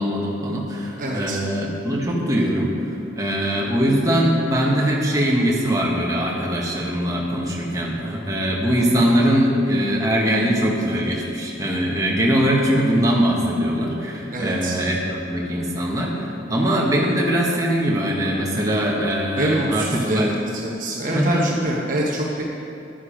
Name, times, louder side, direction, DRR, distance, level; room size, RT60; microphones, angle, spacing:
voice 1, 0.0-20.3 21.1-21.4, equal, 20° right, -3 dB, 1.4 m, -21 dB
voice 2, 1.0-1.4 14.3-14.7 19.4-20.3 20.6-22.4, right 1 dB, 45° right, -2 dB, 1.0 m, -24 dB
10.5 x 9.6 x 5.1 m, 2.8 s
head